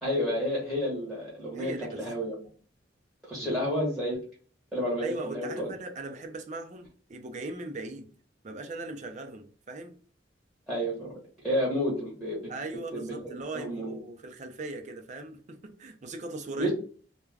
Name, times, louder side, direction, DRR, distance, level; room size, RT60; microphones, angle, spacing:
voice 1, 0.0-2.3 3.2-4.2 4.7-5.7 10.7-12.4 12.9-14.0 16.6-16.7, equal, ahead, 1.0 m, -30 dB
voice 2, 1.5-2.1 3.3-3.6 5.0-8.1 8.4-10.0 12.5-16.7, right 2 dB, 40° right, 0.4 m, -39 dB
2.3 x 2.1 x 3.2 m
head